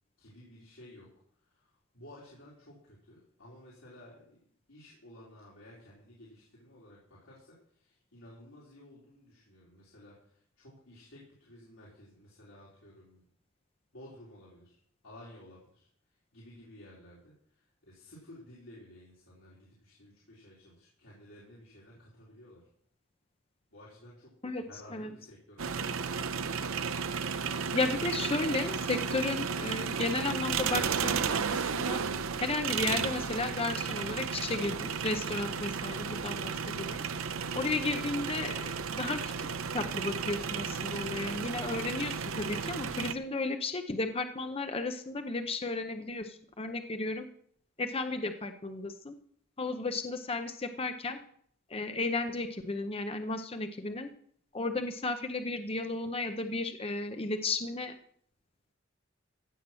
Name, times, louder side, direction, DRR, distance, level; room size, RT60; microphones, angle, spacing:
voice 1, 0.2-1.1 1.5-4.4 4.7-13.3 13.9-14.8 15.0-15.9 16.3-22.6 23.7-27.0, left 1 dB, 80° left, -7 dB, 4.3 m, -54 dB
sound 1, 25.6-43.1, right 6 dB, 80° right, 0.7 m, -33 dB
voice 2, 27.7-32.0 32.4-37.0 37.5-39.5 39.7-47.3 47.8-49.2 49.6-51.2 51.7-54.1 54.5-57.9, left 3 dB, 30° left, 7 dB, 0.7 m, -34 dB
15.5 x 6.0 x 7.6 m, 0.64 s
head